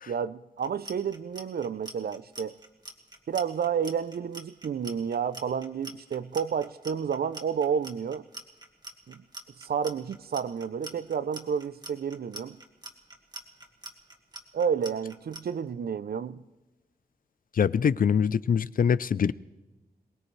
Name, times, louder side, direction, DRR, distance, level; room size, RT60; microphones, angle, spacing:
voice 1, 0.1-2.6 3.3-8.2 9.1-9.2 9.6-12.6 14.5-16.4, right 7 dB, 80° right, 0.5 m, -30 dB
Clock, 0.6-15.4, right 1 dB, 25° right, 1.7 m, -43 dB
voice 2, 17.5-19.3, left 7 dB, 65° left, 0.4 m, -24 dB
23.0 x 19.0 x 3.2 m
wide cardioid pair, 85°, 16 cm